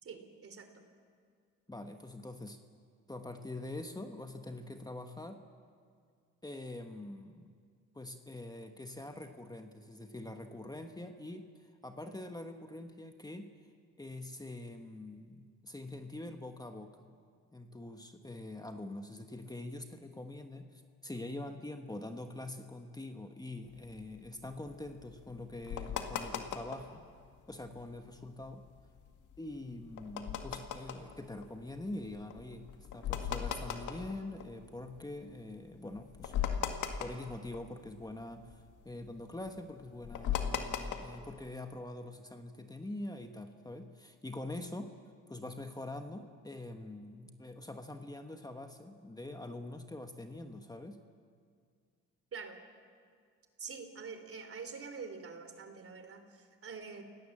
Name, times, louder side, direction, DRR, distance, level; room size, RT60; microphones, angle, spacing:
voice 1, 0.0-0.8 52.3-52.6 53.6-57.0, right 5 dB, 50° right, 7 dB, 3.1 m, -46 dB
voice 2, 1.7-2.6 3.1-5.4 6.4-7.5 7.9-13.5 14.0-17.1 17.5-27.0 27.5-28.6 29.4-36.3 37.0-44.9 45.3-51.0, left 2 dB, 15° left, 6 dB, 1.4 m, -44 dB
sound 1, 23.7-27.0 27.4-27.5 27.6-28.0 28.4-35.1 35.5-35.6 35.9-38.0 38.3-41.3, left 8 dB, 85° left, 1.9 m, -38 dB
29.0 x 18.0 x 7.5 m, 2.1 s
cardioid pair, 90°, 30 cm